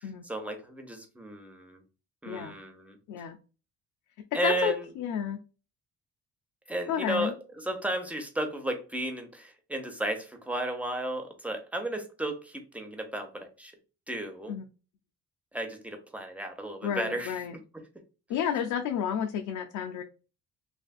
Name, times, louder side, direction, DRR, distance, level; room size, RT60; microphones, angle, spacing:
voice 1, 0.0-1.8 2.2-3.0 4.3-4.9 6.7-13.7 14.1-14.6 15.5-17.3, right 1 dB, 5° right, 4 dB, 0.8 m, -34 dB
voice 2, 4.4-5.4 6.9-7.3 14.5-14.6 16.8-17.5 18.3-20.0, left 8 dB, 80° left, 4 dB, 0.5 m, -31 dB
3.3 x 2.5 x 2.3 m, 0.33 s
cardioid pair, 90°, 30 cm